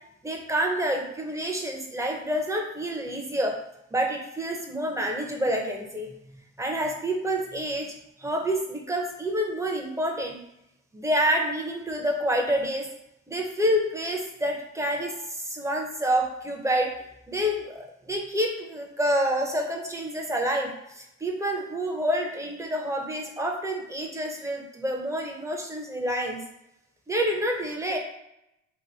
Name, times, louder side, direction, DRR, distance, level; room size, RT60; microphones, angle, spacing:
voice 1, 0.2-3.6 3.9-6.1 6.6-7.9 8.2-10.4 10.9-12.9 13.3-16.9 17.3-26.4 27.1-28.0, equal, 10° right, 1 dB, 0.7 m, -28 dB
2.9 x 2.5 x 4.0 m, 0.82 s
cardioid pair, 90°, 30 cm